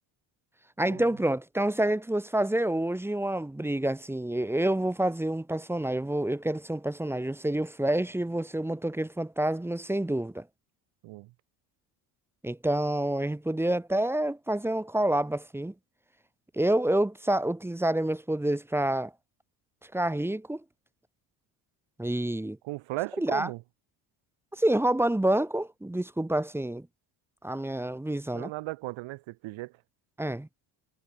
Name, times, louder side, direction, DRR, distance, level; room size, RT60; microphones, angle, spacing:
voice 1, 0.8-10.5 12.4-15.7 16.5-19.1 19.9-20.6 22.0-22.6 23.2-23.5 24.5-26.9 27.4-28.5 30.2-30.5, right 1 dB, 5° right, 0.9 m, -28 dB
voice 2, 22.6-23.6 28.3-29.7, right 20 dB, 80° right, 4.0 m, -36 dB
cardioid pair, 110°, 46 cm